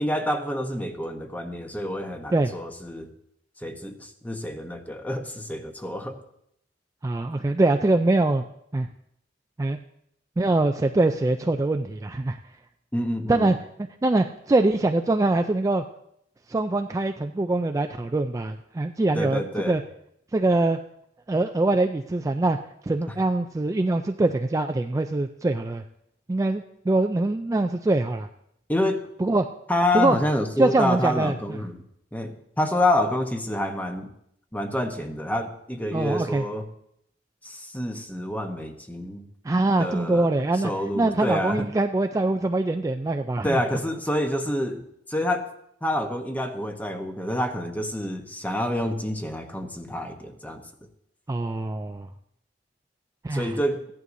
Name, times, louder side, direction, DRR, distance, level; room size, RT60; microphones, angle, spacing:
voice 1, 0.0-3.1 3.6-6.2 12.9-13.5 19.1-19.8 28.7-29.0 29.7-31.8 32.1-34.1 34.5-36.7 37.4-39.2 39.8-41.7 43.4-44.8 45.1-45.5 45.8-50.6 53.3-53.9, left 1 dB, 10° left, 5 dB, 0.9 m, -27 dB
voice 2, 7.0-8.4 8.7-8.9 9.6-9.8 10.4-12.4 13.3-13.6 14.0-15.8 16.5-19.8 20.3-20.8 21.3-22.6 22.8-25.8 26.3-28.3 29.2-29.4 29.9-30.2 30.6-31.3 35.9-36.4 39.4-43.6 51.3-52.1 53.2-53.5, right 2 dB, 20° right, 5 dB, 0.3 m, -23 dB
15.5 x 11.0 x 2.6 m, 0.74 s
head